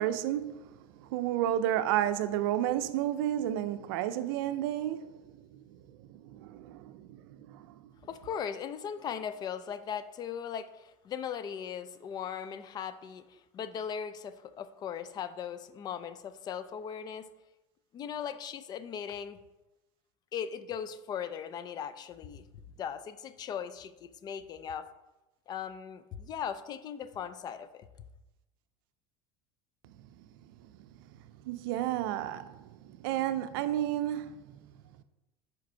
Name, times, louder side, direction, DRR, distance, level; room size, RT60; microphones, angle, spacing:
voice 1, 0.0-5.8 6.1-7.7 30.2-30.3 30.8-30.9 31.4-34.5, right 12 dB, 80° right, 0.5 m, -32 dB
voice 2, 8.0-17.3 17.9-19.4 20.3-24.9 25.5-27.9, left 8 dB, 35° left, 0.4 m, -38 dB
5.2 x 4.8 x 4.5 m
supercardioid pair, 120°, 12 cm